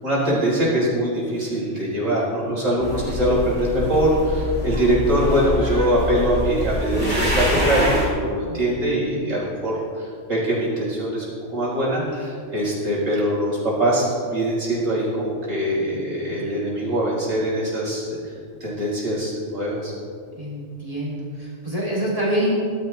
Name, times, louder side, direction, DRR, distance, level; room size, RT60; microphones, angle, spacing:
voice 1, 0.0-11.3 11.5-18.3 18.6-19.9, right 1 dB, 80° right, -7 dB, 4.7 m, -22 dB
sound 1, 2.8-8.1, left 1 dB, 10° left, 4.0 m, -25 dB
voice 2, 20.4-22.5, right 1 dB, 30° right, -6 dB, 3.0 m, -26 dB
19.0 x 13.0 x 3.3 m, 2.3 s
omnidirectional pair, 1.3 m